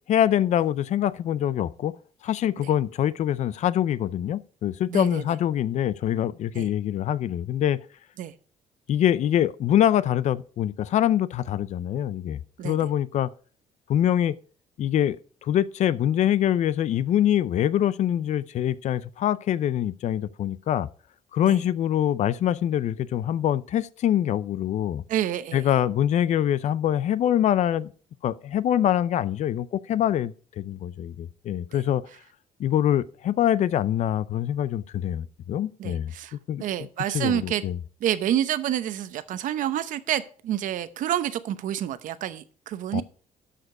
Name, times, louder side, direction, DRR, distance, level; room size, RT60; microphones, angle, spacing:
voice 1, 0.1-1.9 2.2-7.8 8.9-13.3 13.9-14.4 14.8-20.9 21.3-25.0 25.5-27.9 28.2-32.0 32.6-36.1 36.5-36.6 37.1-37.8 42.9-43.0, left 11 dB, 60° left, 0.5 m, -24 dB
voice 2, 4.9-5.2 6.5-6.7 8.2-8.3 12.6-12.8 21.4-21.6 25.1-25.7 31.7-31.8 35.8-36.3 36.6-37.6 38.0-43.0, right 11 dB, 70° right, 0.8 m, -28 dB
12.5 x 5.2 x 4.8 m
cardioid pair, 115°, 14 cm